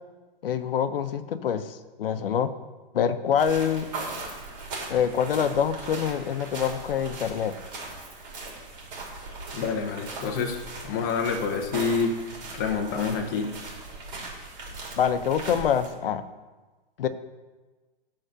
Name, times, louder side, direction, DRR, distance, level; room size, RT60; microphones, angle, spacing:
voice 1, 0.4-2.5 2.9-3.9 4.9-7.5 15.0-16.2 17.0-17.1, left 8 dB, 70° left, 11 dB, 0.8 m, -25 dB
sound 1, 3.4-15.9, right 3 dB, 50° right, 3.3 m, -39 dB
voice 2, 9.5-10.6 10.8-12.2 12.5-13.5, left 5 dB, 20° left, 3 dB, 0.6 m, -27 dB
11.0 x 3.9 x 6.6 m, 1.2 s
hypercardioid pair, 175°, 29 cm